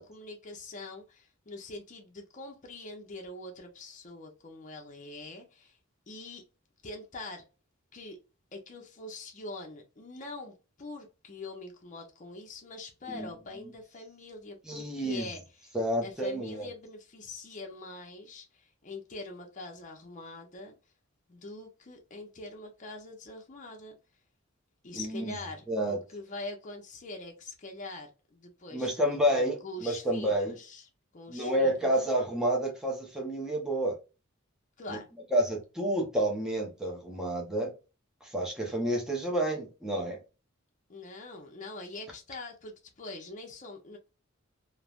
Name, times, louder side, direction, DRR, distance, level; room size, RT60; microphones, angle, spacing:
voice 1, 0.0-5.8 6.1-6.4 6.8-7.4 7.9-8.2 8.5-15.8 16.0-20.8 21.3-24.0 24.8-31.9 34.8-35.1 40.9-44.0, left 2 dB, 40° left, 0.6 m, -44 dB
voice 2, 14.7-15.3 15.7-16.7 24.9-25.3 25.7-26.0 28.7-30.6 31.3-34.0 34.9-35.0 35.3-37.7 38.2-40.2, right 1 dB, 5° right, 0.6 m, -29 dB
3.1 x 2.1 x 2.3 m
head